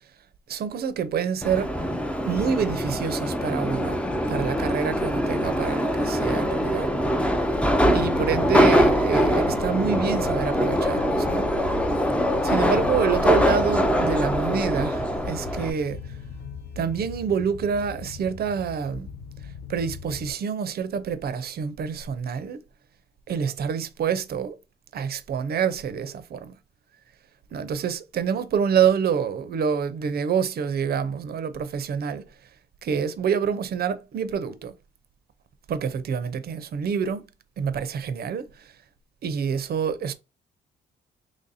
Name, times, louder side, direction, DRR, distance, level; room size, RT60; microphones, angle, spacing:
voice 1, 0.5-1.8 2.2-4.0 4.3-6.9 7.9-11.5 12.4-16.2 16.8-19.1 19.7-22.6 23.3-24.6 24.9-26.5 27.5-32.2 32.8-34.7 35.7-37.2 37.6-38.7 39.2-40.1, right 7 dB, 50° right, 0.5 m, -27 dB
Subway metro underground, 1.4-15.7, equal, 5° left, 0.4 m, -23 dB
sound 1, 7.8-20.3, left 5 dB, 60° left, 1.1 m, -39 dB
3.1 x 2.6 x 4.0 m
cardioid pair, 90°, 20 cm